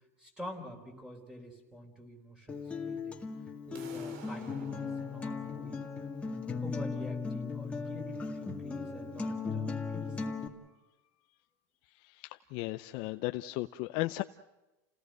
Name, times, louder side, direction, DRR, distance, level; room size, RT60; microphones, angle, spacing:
voice 1, 0.2-3.2 3.7-5.8 6.2-10.2, equal, 10° right, 2 dB, 4.2 m, -47 dB
Acoustic guitar, 2.5-10.5, left 4 dB, 15° left, 2.0 m, -37 dB
sound 1, 3.7-9.7, right 7 dB, 70° right, 3.3 m, -55 dB
voice 2, 11.9-14.2, left 19 dB, 55° left, 9 dB, 0.6 m, -36 dB
29.0 x 18.5 x 6.5 m, 1.1 s
supercardioid pair, 135°, 9 cm